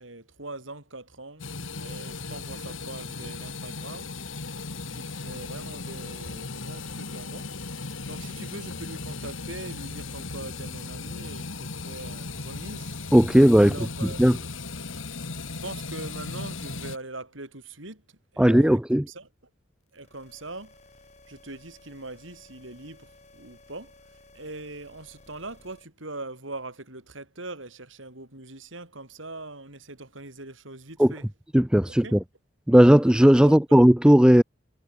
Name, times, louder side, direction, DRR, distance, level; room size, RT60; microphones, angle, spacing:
voice 1, 0.0-1.5 1.8-4.1 4.9-7.5 8.0-12.9 13.6-14.4 15.6-18.0 18.3-18.8 19.1-19.3 19.9-20.7 21.3-23.9 24.3-31.2 32.0-32.2 33.4-33.6, right 2 dB, 75° right, 6.4 m, -41 dB
sound 1, 1.4-17.0, left 3 dB, 80° left, 2.4 m, -37 dB
voice 2, 13.1-13.7 14.2-14.4 18.4-19.1 31.0-31.1 31.5-32.2 32.7-34.4, equal, 5° right, 0.4 m, -16 dB
sound 2, 19.9-25.8, left 2 dB, 35° left, 6.4 m, -55 dB
head